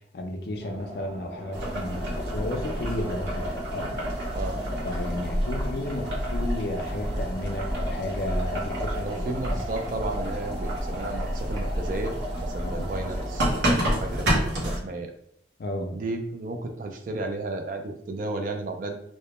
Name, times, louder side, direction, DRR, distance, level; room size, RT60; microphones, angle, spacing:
voice 1, 0.1-3.9 4.8-9.6 12.6-12.9 15.6-15.9, left 1 dB, 60° left, 3 dB, 0.4 m, -33 dB
sound 1, 0.6-14.7, right 1 dB, 30° right, 0.7 m, -40 dB
Boiling, 1.5-14.8, equal, 80° right, 0.7 m, -29 dB
voice 2, 9.0-15.1 15.9-19.0, right 2 dB, 45° right, 5 dB, 0.3 m, -33 dB
2.1 x 2.0 x 2.8 m, 0.70 s
head